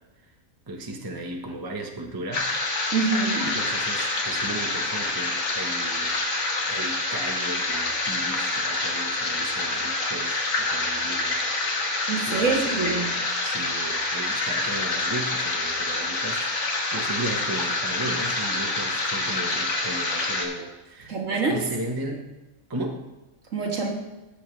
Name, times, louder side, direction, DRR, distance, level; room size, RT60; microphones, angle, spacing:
voice 1, 0.7-2.5 3.4-6.2 6.7-13.1 13.4-16.5 16.9-21.2 21.5-22.3 22.7-23.0, right 2 dB, 20° right, 2 dB, 0.8 m, -36 dB
sound 1, 2.3-20.5, left 2 dB, 60° left, 1.5 m, -27 dB
voice 2, 2.9-3.5 12.1-13.2 21.1-21.6 23.5-23.9, right 4 dB, 60° right, 0 dB, 1.8 m, -25 dB
14.5 x 7.0 x 3.2 m, 1.1 s
omnidirectional pair, 1.5 m